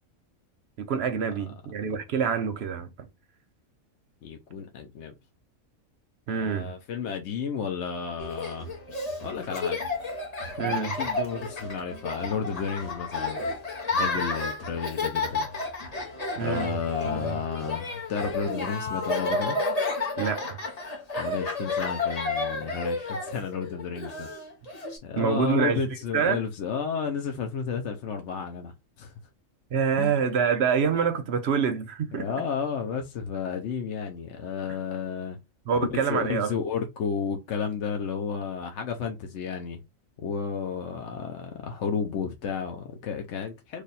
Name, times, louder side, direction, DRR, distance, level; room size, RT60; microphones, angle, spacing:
voice 1, 0.8-2.9 6.3-6.7 10.6-10.9 16.4-16.7 17.1-17.4 20.2-20.6 25.2-25.8 26.1-26.4 29.7-32.3 35.7-36.5, right 6 dB, 60° right, 0.7 m, -26 dB
voice 2, 4.2-5.1 6.3-8.7 9.2-9.8 10.6-13.4 13.9-15.5 16.4-19.6 21.2-24.3 25.0-28.7 29.0-29.1 30.0-30.2 32.1-35.4 35.8-39.8 40.2-43.8, left 6 dB, 60° left, 0.9 m, -32 dB
Laughter, 8.2-25.0, left 3 dB, 35° left, 0.9 m, -31 dB
3.3 x 2.3 x 4.1 m
omnidirectional pair, 1.4 m